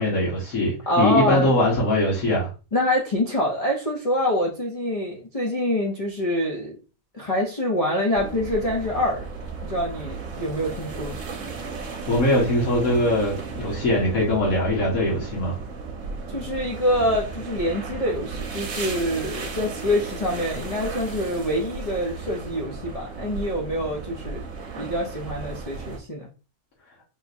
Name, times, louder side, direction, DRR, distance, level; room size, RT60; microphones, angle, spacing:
voice 1, 0.0-2.5 12.1-15.6, left 1 dB, 65° left, -7 dB, 1.6 m, -22 dB
voice 2, 0.9-1.5 2.7-6.8 7.1-9.2 9.6-11.1 16.3-24.4 24.8-26.3, left 1 dB, 45° left, -2 dB, 0.4 m, -25 dB
sound 1, 8.1-26.0, right 4 dB, 60° right, 1.1 m, -35 dB
3.8 x 2.9 x 2.5 m, 0.34 s
omnidirectional pair, 1.7 m